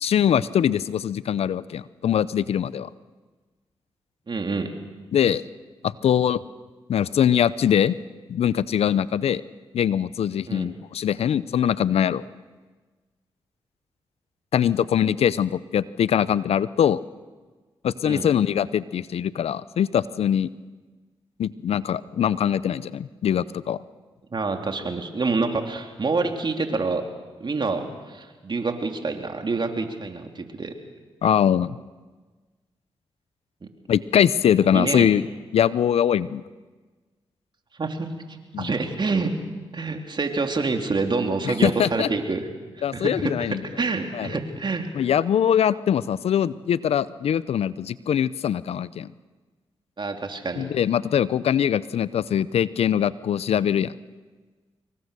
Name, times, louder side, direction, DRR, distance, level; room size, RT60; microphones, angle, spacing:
voice 1, 0.0-2.9 5.1-5.4 5.8-6.4 6.9-8.0 8.3-9.4 9.7-12.2 14.5-17.0 17.8-20.5 21.4-23.8 31.2-31.8 33.9-35.3 35.5-36.4 38.5-38.7 41.6-42.1 42.8-43.6 44.1-44.3 45.0-49.1 50.6-53.9, left 9 dB, 75° left, 18 dB, 0.6 m, -22 dB
voice 2, 4.3-4.7 10.5-10.7 18.0-18.3 24.3-27.0 27.4-30.7 34.6-35.1 37.8-38.1 38.6-39.3 39.7-42.4 42.9-44.9 50.0-50.7, right 3 dB, 45° right, 4 dB, 3.3 m, -27 dB
25.5 x 22.5 x 6.8 m, 1.3 s
supercardioid pair, 45°, 11 cm